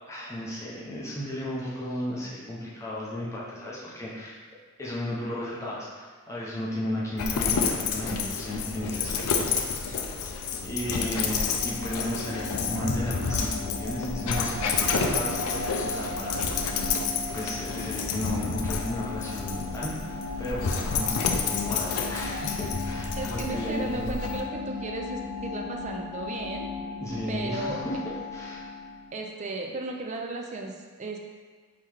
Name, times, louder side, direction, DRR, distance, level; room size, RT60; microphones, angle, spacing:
voice 1, 0.1-4.4 4.8-10.0 10.6-11.4 11.6-16.8 17.3-24.1 27.0-28.0 28.3-28.7, left 1 dB, 15° left, -7 dB, 0.6 m, -34 dB
Dog, 7.2-24.4, left 5 dB, 85° left, 0.4 m, -30 dB
sound 1, 10.2-29.1, left 3 dB, 60° left, 0.8 m, -37 dB
voice 2, 23.2-26.7 27.3-27.9 29.1-31.2, right 3 dB, 35° right, 1 dB, 0.4 m, -35 dB
3.7 x 2.9 x 4.7 m, 1.5 s
head